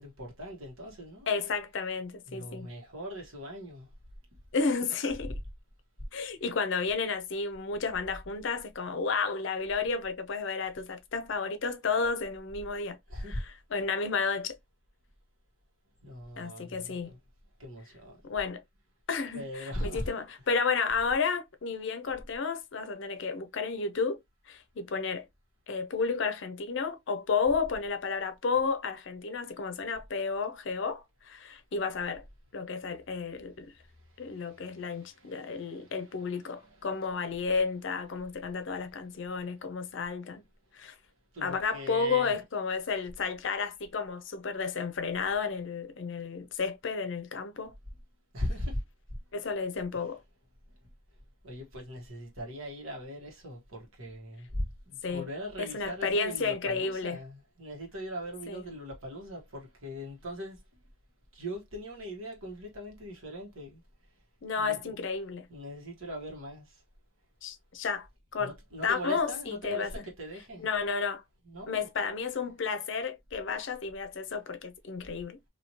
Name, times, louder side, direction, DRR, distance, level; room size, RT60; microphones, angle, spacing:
voice 1, 0.0-1.3 2.3-3.9 13.1-13.4 16.0-17.2 17.6-18.2 19.3-20.1 34.3-36.9 41.3-42.4 48.3-48.8 49.9-50.1 51.4-60.6 61.3-63.8 64.6-64.9 65.5-66.8 68.4-70.7 71.4-71.9, equal, 80° right, 1.4 m, -40 dB
voice 2, 1.3-2.7 4.5-5.4 6.1-13.0 13.3-14.6 16.4-17.1 18.3-18.6 19.1-24.2 24.5-25.3 25.7-32.2 32.5-33.7 34.2-40.4 40.7-40.9 41.4-47.7 49.3-50.2 55.0-55.3 55.6-57.2 58.5-58.6 64.4-65.5 67.4-68.1 68.3-68.5 68.8-70.0 70.6-71.2 71.7-75.4, left 5 dB, 60° left, 0.5 m, -32 dB
3.1 x 2.7 x 2.7 m
head